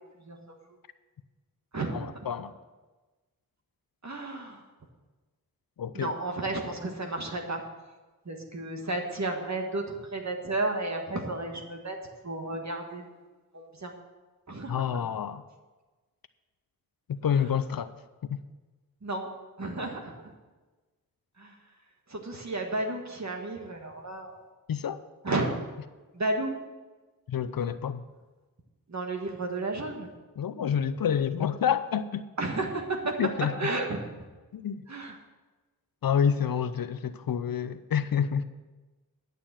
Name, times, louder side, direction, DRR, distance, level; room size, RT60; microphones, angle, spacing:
voice 1, 1.9-2.5 5.8-6.1 14.7-15.4 17.1-17.9 18.2-18.4 24.7-25.0 27.3-28.0 30.4-32.2 33.2-33.7 34.5-34.8 36.0-38.4, left 8 dB, 65° left, 13 dB, 0.6 m, -28 dB
voice 2, 4.0-4.6 5.9-7.6 8.3-12.0 12.2-13.0 13.5-13.9 14.5-14.8 19.0-19.3 19.6-20.1 21.4-21.5 22.1-24.4 25.2-25.5 26.1-26.5 28.9-30.1 32.4-33.2 33.6-34.0 34.9-35.1, right 2 dB, 45° right, 3 dB, 1.6 m, -32 dB
11.0 x 6.8 x 7.3 m, 1.2 s
cardioid pair, 45°, 38 cm